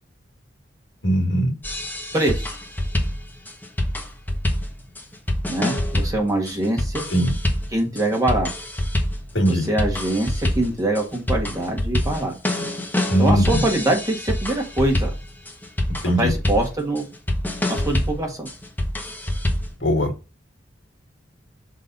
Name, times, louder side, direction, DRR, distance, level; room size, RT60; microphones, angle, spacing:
voice 1, 1.0-1.5 7.1-7.3 9.3-9.7 13.1-13.6 16.0-16.3 19.8-20.1, equal, 80° left, 2 dB, 2.1 m, -20 dB
sound 1, 1.6-19.8, left 1 dB, 10° left, 1.2 m, -26 dB
voice 2, 2.1-2.5 5.5-7.1 7.7-8.5 9.4-12.3 13.2-15.1 16.2-17.1 17.7-18.5, right 1 dB, 20° right, 1 dB, 1.7 m, -23 dB
6.4 x 4.0 x 3.9 m, 0.30 s
head